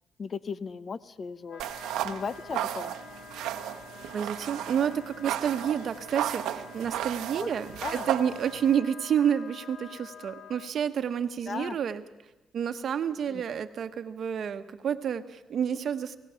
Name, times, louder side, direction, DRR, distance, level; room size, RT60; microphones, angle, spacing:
voice 1, 0.2-1.6 2.0-3.0 7.4-7.5 7.8-8.1 11.5-11.8 13.3-13.4, left 5 dB, 45° left, 16 dB, 0.7 m, -36 dB
Wind instrument woodwind instrument, 1.4-10.7, left 7 dB, 65° left, 0.9 m, -48 dB
sound 1, 1.6-8.8, right 11 dB, 90° right, 0.9 m, -34 dB
voice 2, 4.1-12.0 12.5-16.2, right 8 dB, 60° right, 9 dB, 1.1 m, -29 dB
29.5 x 17.5 x 5.8 m, 1.1 s
cardioid pair, 90°, 0 cm